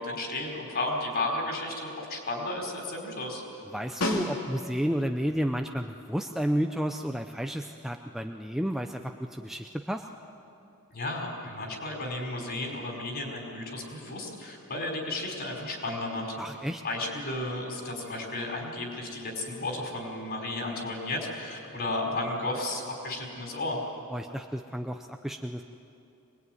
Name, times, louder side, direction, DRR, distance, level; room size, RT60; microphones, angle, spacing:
voice 1, 0.0-3.4 10.9-16.3 16.8-23.8, left 2 dB, 45° left, 1 dB, 5.0 m, -33 dB
voice 2, 3.7-10.1 16.4-16.8 24.1-25.6, equal, ahead, 4 dB, 0.6 m, -31 dB
Snare drum, 4.0-4.9 9.4-9.5, left 1 dB, 65° left, 3.3 m, -31 dB
24.0 x 21.0 x 9.4 m, 2.7 s
head